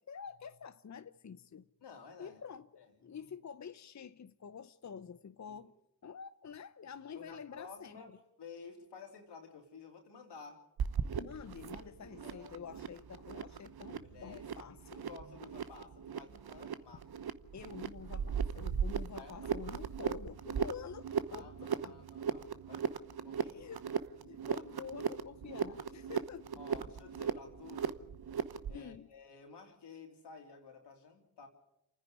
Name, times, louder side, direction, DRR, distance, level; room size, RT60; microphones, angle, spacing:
voice 1, 0.1-1.7 2.2-5.7 6.0-8.0 11.2-15.0 17.5-22.0 23.4-23.9 24.2-26.6 28.7-29.1, left 7 dB, 45° left, 0.8 m, -48 dB
voice 2, 1.8-2.4 2.7-3.2 5.5-5.6 7.1-8.1 8.4-10.6 11.8-12.6 13.9-14.5 15.0-17.1 19.1-19.5 21.2-23.0 23.2-23.6 26.6-27.9 28.7-31.5, left 5 dB, 85° left, 3.4 m, -53 dB
sound 1, 10.8-28.8, right 7 dB, 65° right, 1.0 m, -38 dB
27.5 x 9.9 x 9.8 m
supercardioid pair, 40°, 40 cm